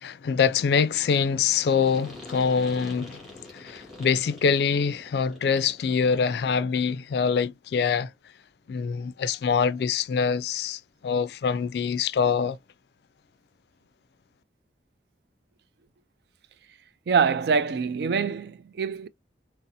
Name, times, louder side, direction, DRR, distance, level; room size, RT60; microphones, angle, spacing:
voice 1, 0.0-8.1 8.7-12.6, left 6 dB, 60° left, 0.3 m, -25 dB
sound 1, 1.7-5.9, left 2 dB, ahead, 1.4 m, -45 dB
voice 2, 17.1-19.1, right 5 dB, 60° right, 0.3 m, -24 dB
4.0 x 2.0 x 2.6 m
head